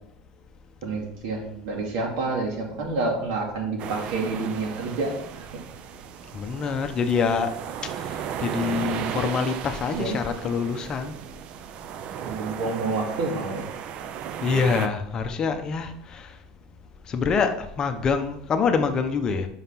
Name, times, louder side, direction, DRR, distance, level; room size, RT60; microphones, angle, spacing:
voice 1, 0.8-5.5 9.9-10.2 12.2-13.7, right 3 dB, 75° right, 0 dB, 2.4 m, -28 dB
sound 1, 3.8-14.9, right 9 dB, 45° right, 0.5 m, -35 dB
voice 2, 6.3-7.5 8.4-11.2 14.4-16.3 17.1-19.5, left 5 dB, 30° left, 7 dB, 0.8 m, -25 dB
5.8 x 5.7 x 5.7 m, 0.71 s
cardioid pair, 140°, 2 cm